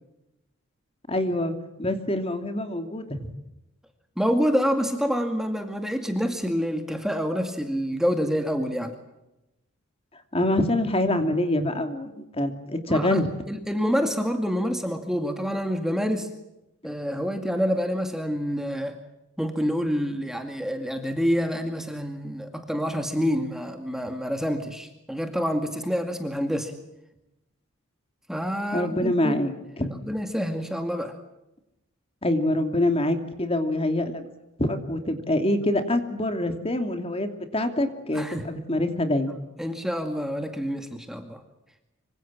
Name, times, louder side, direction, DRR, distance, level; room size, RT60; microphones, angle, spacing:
voice 1, 1.1-1.5 1.8-3.3 10.3-13.3 28.7-29.9 32.2-34.3 34.6-39.3, left 1 dB, 25° left, 7 dB, 2.7 m, -25 dB
voice 2, 4.2-9.0 12.9-13.2 13.5-16.3 16.8-19.0 19.4-26.7 28.3-29.4 30.0-31.1 38.1-38.5 39.6-41.4, equal, ahead, 5 dB, 2.2 m, -27 dB
26.0 x 25.0 x 7.5 m, 0.91 s
head